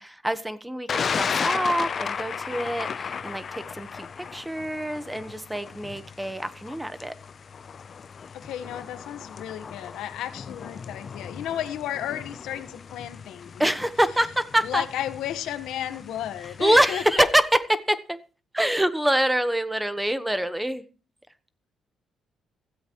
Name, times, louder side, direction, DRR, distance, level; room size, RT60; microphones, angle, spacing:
voice 1, 0.0-4.1 4.3-7.1 13.6-14.9 16.4-18.2 18.5-20.8, right 1 dB, 5° right, 1.2 m, -25 dB
Thunder, 0.9-17.1, left 6 dB, 45° left, 0.6 m, -35 dB
voice 2, 8.3-13.7 14.6-17.3, left 11 dB, 85° left, 1.3 m, -33 dB
16.0 x 13.5 x 3.1 m
cardioid pair, 90°, 0 cm